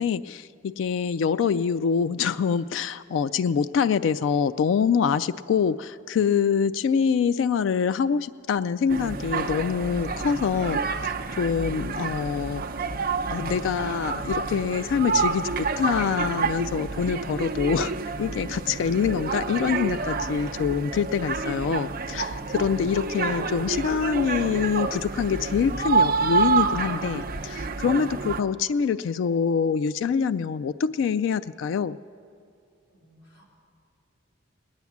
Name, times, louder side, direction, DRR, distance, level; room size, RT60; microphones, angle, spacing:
voice 1, 0.0-12.6 13.3-17.9 18.2-32.0, left 6 dB, 80° left, 13 dB, 0.3 m, -25 dB
sound 1, 8.9-28.4, right 4 dB, 50° right, 0.6 m, -28 dB
voice 2, 32.9-33.5, left 2 dB, 65° left, -4 dB, 4.1 m, -50 dB
18.5 x 10.5 x 7.2 m, 2.5 s
head